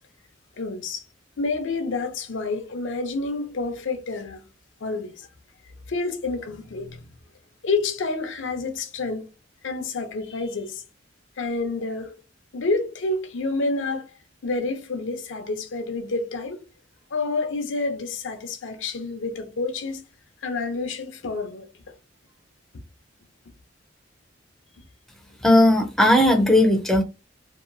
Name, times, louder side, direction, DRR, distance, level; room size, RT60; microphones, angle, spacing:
voice 1, 0.6-1.0 1.4-4.4 4.8-5.3 5.9-7.1 7.6-9.3 9.6-10.8 11.4-12.2 12.5-14.1 14.4-16.6 17.1-20.0 20.4-21.7, left 3 dB, 85° left, 0.6 m, -28 dB
voice 2, 25.4-27.0, left 1 dB, ahead, 0.4 m, -17 dB
2.8 x 2.2 x 2.5 m
head